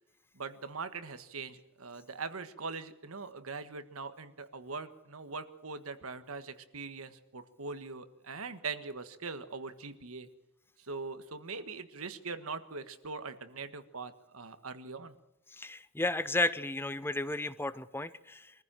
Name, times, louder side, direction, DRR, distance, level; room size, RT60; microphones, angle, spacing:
voice 1, 0.3-10.3 10.8-15.2, right 4 dB, 80° right, 10 dB, 1.5 m, -42 dB
voice 2, 15.5-18.5, left 2 dB, 10° left, 15 dB, 0.7 m, -33 dB
23.5 x 15.0 x 7.6 m, 0.92 s
head